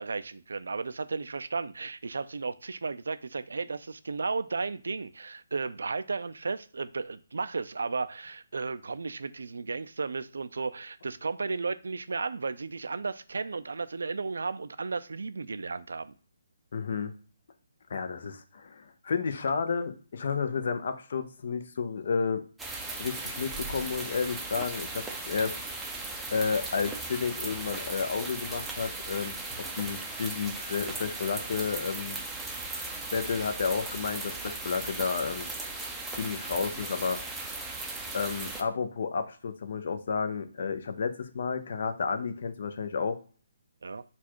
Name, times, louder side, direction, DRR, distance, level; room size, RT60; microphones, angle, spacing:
voice 1, 0.0-16.1 43.8-44.0, right 4 dB, 80° right, 0.5 m, -34 dB
voice 2, 16.7-17.1 17.9-22.4 23.0-25.6 26.3-32.2 33.1-35.5 36.1-37.2 38.1-43.2, left 5 dB, 55° left, 0.7 m, -31 dB
sound 1, 22.6-38.6, right 3 dB, 5° right, 0.5 m, -37 dB
sound 2, 25.1-25.2 25.5-25.6 25.9-26.0 26.3-26.8 27.1-27.2 27.5-27.6 27.9-28.0 28.3-28.4 28.7-28.8 29.1-29.2 29.5-29.6 29.9-30.5, equal, 20° left, 1.5 m, -53 dB
4.2 x 2.4 x 4.5 m
hypercardioid pair, 155°, 0 cm